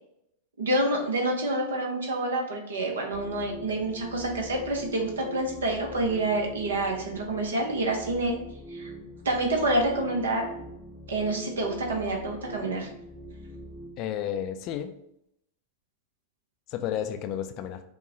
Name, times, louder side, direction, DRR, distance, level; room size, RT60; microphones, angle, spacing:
voice 1, 0.6-8.4 8.7-8.9 9.2-10.5 11.1-12.9, right 1 dB, 65° right, 1 dB, 0.9 m, -27 dB
sound 1, 3.1-14.0, right 1 dB, 5° right, 0.6 m, -44 dB
voice 2, 14.0-14.9 16.7-17.8, left 10 dB, 40° left, 8 dB, 0.4 m, -32 dB
5.4 x 2.3 x 3.7 m, 0.78 s
figure-of-eight pair, 90°, 0 cm